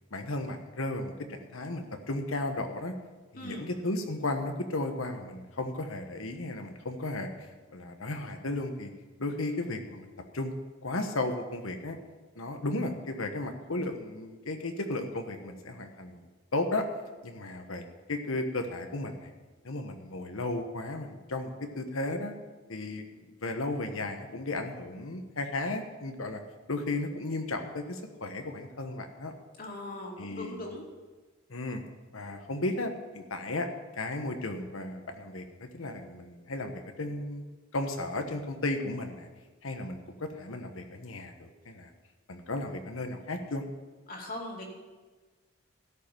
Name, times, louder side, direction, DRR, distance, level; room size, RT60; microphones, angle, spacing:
voice 1, 0.1-2.9 3.3-8.9 9.2-10.5 10.8-12.0 12.4-16.2 16.5-16.9 17.2-17.8 18.1-19.3 19.6-22.3 22.7-26.4 26.7-29.3 30.2-30.6 31.5-31.8 32.1-33.7 33.9-37.4 37.7-39.3 39.6-41.9 42.3-43.6, left 2 dB, 75° left, 6 dB, 1.3 m, -34 dB
voice 2, 3.3-3.7 29.6-30.8 44.1-44.6, left 1 dB, 45° left, -1 dB, 2.5 m, -40 dB
13.0 x 5.6 x 9.1 m, 1.3 s
head